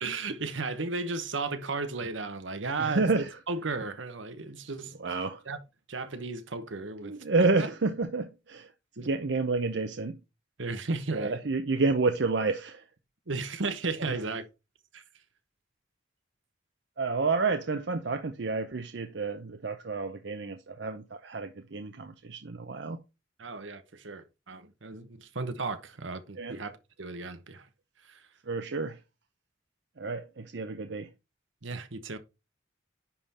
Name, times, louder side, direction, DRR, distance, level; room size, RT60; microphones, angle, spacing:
voice 1, 0.0-5.2 5.5-5.6 5.9-7.7 9.0-9.1 10.6-11.4 13.3-14.5 14.9-15.0 23.4-27.7 28.0-28.3 31.6-32.2, right 3 dB, 80° right, 1.1 m, -35 dB
voice 2, 2.8-3.4 5.0-5.4 7.0-8.7 9.0-10.2 11.1-12.8 14.0-14.1 17.0-23.0 26.4-26.6 28.5-29.0 30.0-31.1, right 3 dB, 60° right, 0.6 m, -30 dB
10.0 x 3.8 x 4.2 m
head